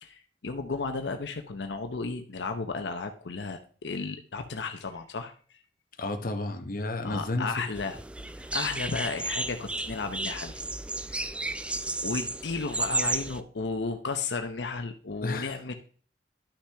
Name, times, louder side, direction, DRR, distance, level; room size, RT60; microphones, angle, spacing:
voice 1, 0.0-5.6 7.0-8.0 8.3-10.6 11.1-11.3 12.0-15.7, left 4 dB, 80° left, 6 dB, 0.7 m, -34 dB
voice 2, 6.0-7.6 15.2-15.7, left 2 dB, 55° left, 6 dB, 0.9 m, -32 dB
sound 1, 7.7-13.4, right 2 dB, 5° right, 0.3 m, -33 dB
11.5 x 5.9 x 3.4 m, 0.44 s
head